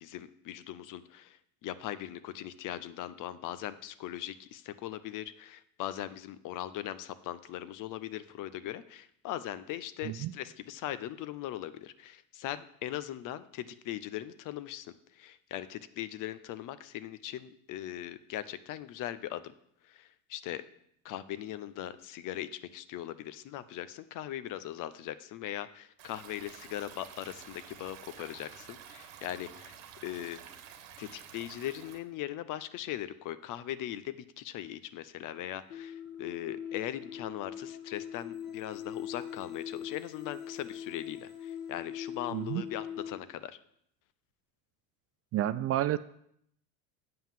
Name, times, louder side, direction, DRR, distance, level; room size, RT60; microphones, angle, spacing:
voice 1, 0.0-14.9 15.1-19.5 19.9-20.6 21.0-29.8 30.0-30.4 31.0-43.6, left 12 dB, 50° left, 14 dB, 0.7 m, -40 dB
Stream, 26.0-32.0, right 9 dB, 70° right, 1.3 m, -50 dB
sound 1, 35.7-43.2, left 9 dB, 65° left, 1.6 m, -42 dB
voice 2, 42.3-42.6 45.3-46.0, right 13 dB, 35° right, 14 dB, 0.4 m, -30 dB
7.8 x 5.5 x 7.2 m, 0.71 s
hypercardioid pair, 90°, 41 cm